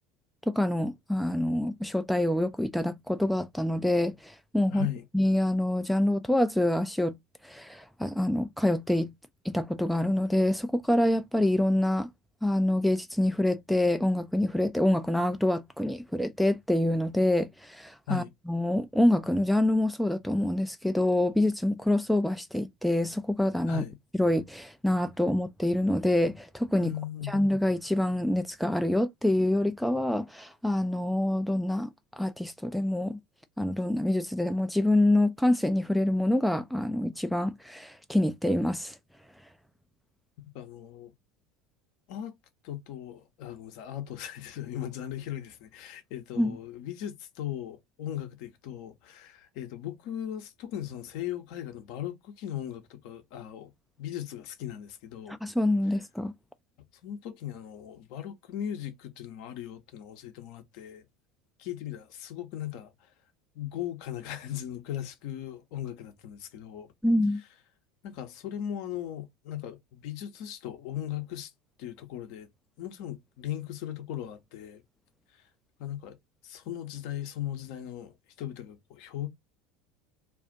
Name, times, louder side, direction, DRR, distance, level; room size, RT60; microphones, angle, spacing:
voice 1, 0.5-4.9 5.1-7.2 7.4-9.1 9.4-12.1 12.4-23.8 24.2-26.9 27.3-33.2 33.6-39.0 46.4-46.6 55.3-56.3 67.0-67.4, left 1 dB, ahead, 0.3 m, -26 dB
voice 2, 4.7-5.0 18.1-18.3 23.7-24.0 26.8-27.4 40.5-41.1 42.1-42.3 42.6-53.7 54.0-55.4 57.0-61.1 61.6-63.1 63.5-66.9 68.0-71.5 71.8-72.5 72.8-74.8 75.3-75.4 75.8-76.2 76.4-79.3, left 11 dB, 55° left, 0.6 m, -38 dB
2.4 x 2.3 x 3.8 m
figure-of-eight pair, 70°, 0 cm